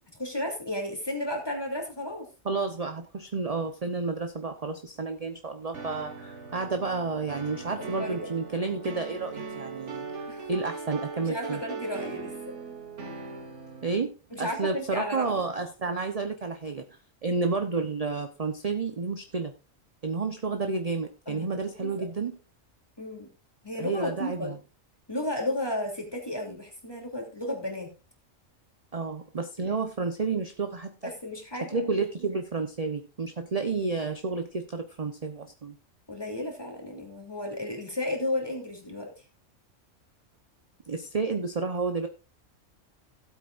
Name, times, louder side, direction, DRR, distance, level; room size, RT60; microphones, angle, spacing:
voice 1, 0.2-2.3 8.0-8.2 10.3-10.5 11.2-12.3 14.3-15.3 21.3-21.9 23.0-23.3 23.6-24.5 25.1-27.9 29.6-29.7 31.0-31.8 36.1-39.2, left 1 dB, 20° left, 1 dB, 3.0 m, -33 dB
voice 2, 2.4-10.0 10.5-11.6 13.8-16.8 17.2-19.5 20.0-22.4 23.8-24.6 28.9-31.1 31.6-35.8 40.9-42.1, right 4 dB, 35° right, 6 dB, 0.9 m, -31 dB
sound 1, 5.7-14.0, right 4 dB, 65° right, 1.7 m, -39 dB
17.0 x 8.3 x 2.5 m, 0.29 s
omnidirectional pair, 1.3 m